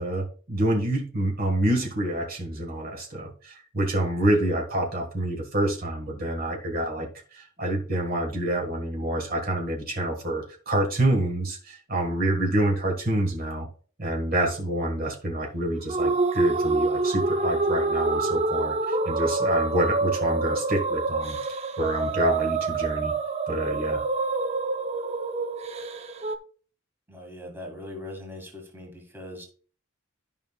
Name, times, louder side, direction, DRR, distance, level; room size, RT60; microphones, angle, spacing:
voice 1, 0.0-13.7 14.0-23.1 23.5-24.0, right 1 dB, 45° right, 1 dB, 1.5 m, -27 dB
sound 1, 15.9-26.4, right 3 dB, 30° right, 0.5 m, -26 dB
voice 2, 27.1-29.4, left 1 dB, 10° right, 1 dB, 1.9 m, -40 dB
12.0 x 5.5 x 2.3 m, 0.41 s
head